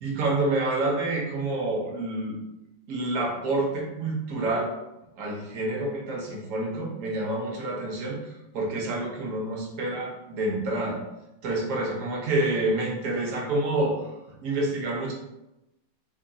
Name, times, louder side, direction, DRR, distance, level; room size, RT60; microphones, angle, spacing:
voice 1, 0.0-2.3 2.9-4.7 5.2-11.0 11.4-14.0 14.4-15.1, right 2 dB, 60° right, -2 dB, 0.8 m, -28 dB
3.5 x 2.3 x 3.7 m, 0.93 s
omnidirectional pair, 2.3 m